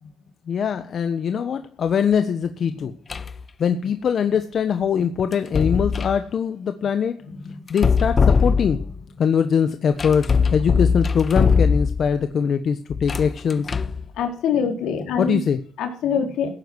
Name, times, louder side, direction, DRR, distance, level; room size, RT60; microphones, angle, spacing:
voice 1, 0.5-2.9 3.6-7.2 7.7-8.8 9.2-13.7 15.2-15.6, left 7 dB, 55° left, 8 dB, 1.3 m, -22 dB
sound 1, 3.1-3.4 5.3-6.2 7.7-9.0 10.0-12.2 12.9-14.0, left 5 dB, 40° left, 1.0 m, -21 dB
voice 2, 14.2-15.4 15.8-16.5, left 6 dB, 85° left, 3 dB, 4.4 m, -24 dB
16.5 x 9.8 x 6.4 m, 0.40 s
cardioid pair, 90°, 0 cm